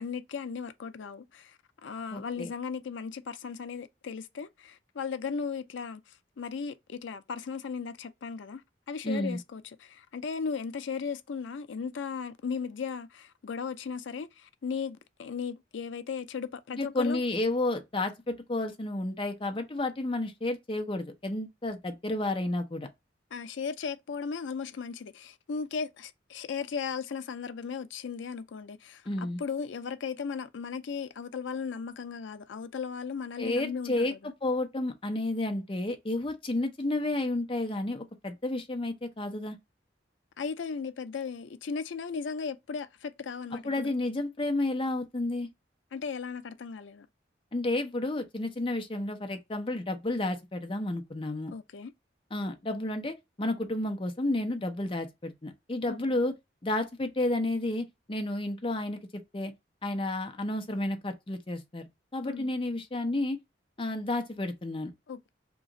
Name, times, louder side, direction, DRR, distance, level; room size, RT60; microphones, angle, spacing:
voice 1, 0.0-17.2 23.3-34.3 40.4-43.9 45.9-47.1 51.5-51.9 55.9-56.2 62.2-62.5 65.1-65.3, left 5 dB, 80° left, 0.4 m, -36 dB
voice 2, 2.1-2.5 9.0-9.4 16.7-22.9 29.1-29.4 33.4-34.1 34.4-39.6 43.5-45.5 47.5-51.5 52.3-56.3 56.6-59.0 59.3-59.5 59.8-61.9 62.1-63.4 63.8-64.9, left 2 dB, 30° left, 0.6 m, -31 dB
3.0 x 2.4 x 3.6 m
head